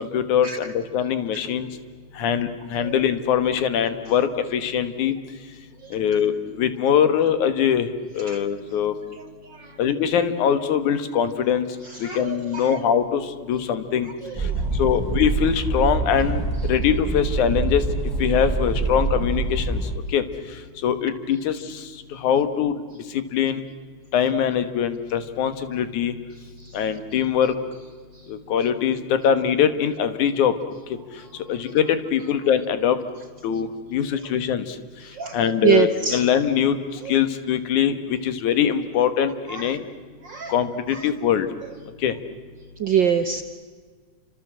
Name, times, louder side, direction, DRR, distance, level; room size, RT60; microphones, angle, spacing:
voice 1, 0.0-1.7 2.1-5.5 5.9-9.0 9.8-17.9 18.2-23.6 24.1-26.2 26.7-27.6 28.3-30.6 30.9-33.0 33.4-39.9 40.5-41.5 42.0-42.2, left 8 dB, 80° left, 10 dB, 2.9 m, -23 dB
voice 2, 9.4-9.8 11.8-12.8 14.2-14.7 26.6-26.8 28.1-28.3 35.0-36.2 37.0-37.1 39.5-39.7 40.2-40.6 40.9-41.0 42.8-43.4, right 8 dB, 70° right, 7 dB, 1.0 m, -25 dB
sound 1, 14.3-19.9, right 2 dB, 5° right, 4.0 m, -25 dB
28.5 x 26.0 x 7.5 m, 1.5 s
omnidirectional pair, 3.4 m